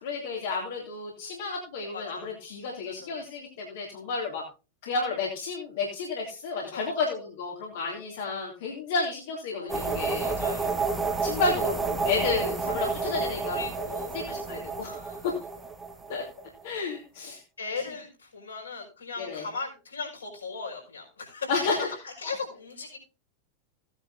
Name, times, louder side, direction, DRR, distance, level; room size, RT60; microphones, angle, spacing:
voice 1, 0.0-4.4 4.8-10.3 11.2-13.6 14.1-15.3 16.1-16.2 16.6-17.4 17.8-17.9 19.2-19.5 21.5-21.9, left 4 dB, 55° left, -2 dB, 2.8 m, -31 dB
voice 2, 1.9-2.3 2.9-3.2 6.7-7.0 9.5-10.8 13.5-14.1 17.6-23.0, left 4 dB, 75° left, 0 dB, 5.3 m, -38 dB
Computer - Desktop - CD - Search, 9.7-16.6, right 4 dB, 10° right, 1.6 m, -30 dB
16.5 x 9.8 x 2.7 m, 0.32 s
figure-of-eight pair, 90°, 0 cm